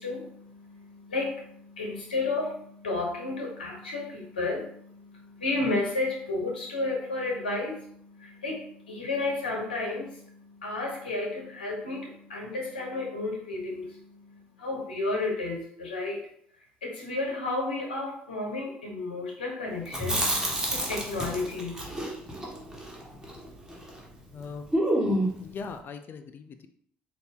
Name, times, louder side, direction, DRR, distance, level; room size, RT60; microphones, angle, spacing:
voice 1, 0.0-14.0 14.6-16.2 16.8-20.2 20.7-21.7, left 2 dB, 90° left, -1 dB, 1.1 m, -32 dB
Chewing mastication, 19.8-24.0 24.3-24.4 24.7-25.5, right 1 dB, 10° right, 1.5 m, -29 dB
voice 2, 24.3-24.7 25.4-26.7, left 5 dB, 45° left, 8 dB, 0.5 m, -40 dB
4.0 x 2.8 x 3.7 m, 0.66 s
hypercardioid pair, 60°, 5 cm